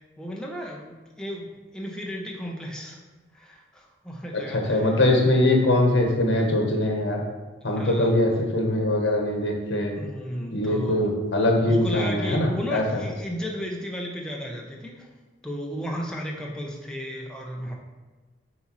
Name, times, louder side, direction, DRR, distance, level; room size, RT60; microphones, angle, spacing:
voice 1, 0.2-3.0 3.3-5.0 7.7-8.2 9.9-11.1 11.6-15.1 15.4-17.8, equal, 5° left, -1 dB, 0.7 m, -34 dB
voice 2, 4.5-7.2 7.6-10.0 10.5-12.8, left 1 dB, 80° left, 2 dB, 1.1 m, -22 dB
7.7 x 4.3 x 3.0 m, 1.3 s
head